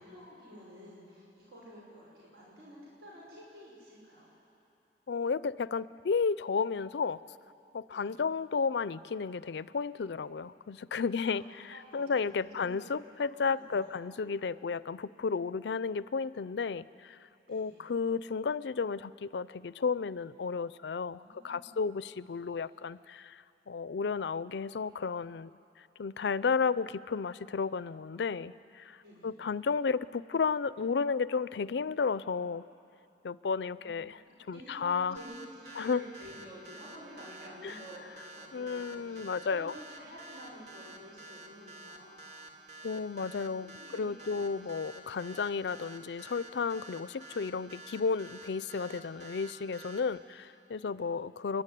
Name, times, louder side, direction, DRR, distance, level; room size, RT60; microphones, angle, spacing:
voice 1, 0.0-4.3 7.9-8.1 11.2-11.4 11.7-13.1 13.5-13.9 17.5-17.9 21.2-21.8 29.0-29.4 33.8-34.0 34.5-43.3 43.6-44.5 46.7-46.9 50.0-50.1 50.9-51.1, equal, 75° right, -5 dB, 6.0 m, -51 dB
voice 2, 5.1-7.2 7.7-17.2 17.5-25.5 26.0-29.0 29.2-32.6 33.2-34.2 34.5-35.2 35.8-36.0 37.6-37.7 38.5-39.7 42.8-51.6, left 5 dB, 75° left, 17 dB, 0.4 m, -33 dB
sound 1, 35.2-50.0, right 2 dB, 40° right, 2.1 m, -49 dB
29.5 x 11.5 x 9.9 m, 2.8 s
head